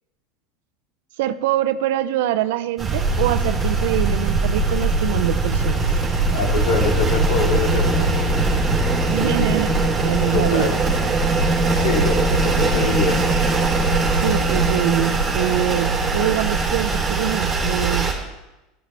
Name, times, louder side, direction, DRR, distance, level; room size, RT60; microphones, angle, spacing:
voice 1, 1.2-5.9 9.1-10.7 12.1-12.2 14.1-18.1, right 13 dB, 80° right, 10 dB, 0.6 m, -24 dB
sound 1, 2.8-18.1, right 2 dB, 10° right, 3.2 m, -20 dB
voice 2, 6.3-8.4 10.3-10.7 11.7-13.3, left 4 dB, 70° left, 1 dB, 2.8 m, -25 dB
16.0 x 12.5 x 3.4 m, 0.99 s
cardioid pair, 170°, 0 cm